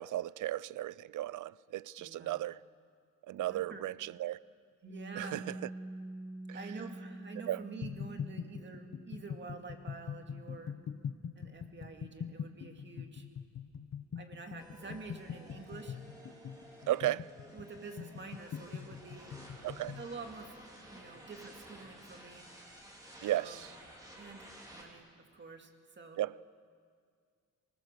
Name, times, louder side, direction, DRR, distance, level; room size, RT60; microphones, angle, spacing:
voice 1, 0.0-2.6 3.3-4.4 5.2-5.4 6.5-6.6 7.5-7.6 16.9-17.2 19.6-20.0 23.2-23.7 26.2-26.3, right 14 dB, 70° right, 0.5 m, -35 dB
voice 2, 2.0-2.4 3.3-3.8 4.9-5.4 6.5-10.8 11.4-13.3 14.2-16.0 17.5-19.3 19.9-20.6 20.9-22.5 23.3-23.6 24.2-25.7 26.0-26.2, right 4 dB, 35° right, 2.2 m, -48 dB
Piano, 4.8-12.1, right 2 dB, 50° right, 7.1 m, -48 dB
sound 1, 7.8-20.1, left 7 dB, 55° left, 1.0 m, -43 dB
sound 2, 14.6-24.8, right 1 dB, 10° right, 4.0 m, -54 dB
25.0 x 20.5 x 6.7 m
wide cardioid pair, 150°, 32 cm